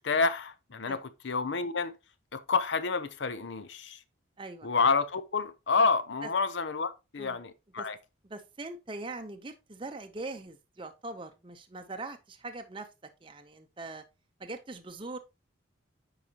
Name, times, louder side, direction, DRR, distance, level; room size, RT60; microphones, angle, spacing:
voice 1, 0.0-1.9 2.3-4.0 4.6-8.0, left 4 dB, 65° left, 0.6 m, -29 dB
voice 2, 4.4-4.7 6.2-6.3 7.2-7.4 7.8-7.9 8.3-12.9 13.2-14.0 14.4-15.2, right 2 dB, 25° right, 0.6 m, -41 dB
9.3 x 4.9 x 2.8 m
head